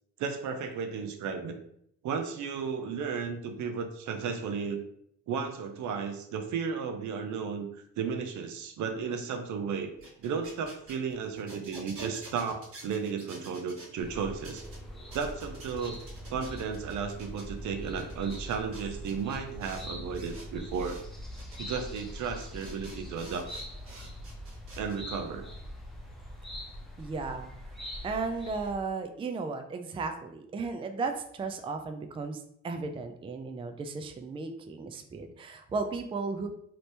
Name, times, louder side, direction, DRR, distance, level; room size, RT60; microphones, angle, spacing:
voice 1, 0.2-1.6 2.0-4.8 5.3-7.7 8.0-9.9 10.2-14.6 15.1-16.0 16.3-21.0 21.6-23.5 24.7-25.5, right 6 dB, 75° right, 6 dB, 0.6 m, -34 dB
sound 1, 9.9-13.9 14.4-14.8 15.1-17.5 17.9-19.9 20.1-21.0 21.4-21.6 22.0-22.1 22.4-25.0, right 2 dB, 50° right, 1.2 m, -48 dB
sound 2, 14.0-28.7, equal, ahead, 0.8 m, -43 dB
voice 2, 27.0-27.5 28.0-36.5, right 4 dB, 20° right, 6 dB, 0.3 m, -35 dB
2.9 x 2.7 x 3.2 m, 0.69 s
cardioid pair, 90°, 30 cm